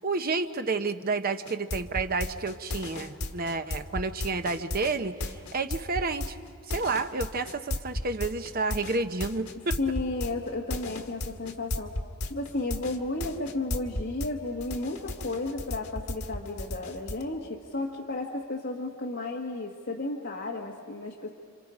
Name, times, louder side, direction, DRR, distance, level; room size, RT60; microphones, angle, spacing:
voice 1, 0.0-6.4 6.7-9.8, right 3 dB, 45° right, 8 dB, 0.9 m, -30 dB
sound 1, 1.4-14.3 14.6-17.2, left 1 dB, 90° left, 1.6 m, -34 dB
voice 2, 9.8-11.9 12.2-21.3, left 2 dB, 55° left, -1 dB, 1.5 m, -33 dB
29.5 x 27.0 x 5.0 m, 2.3 s
head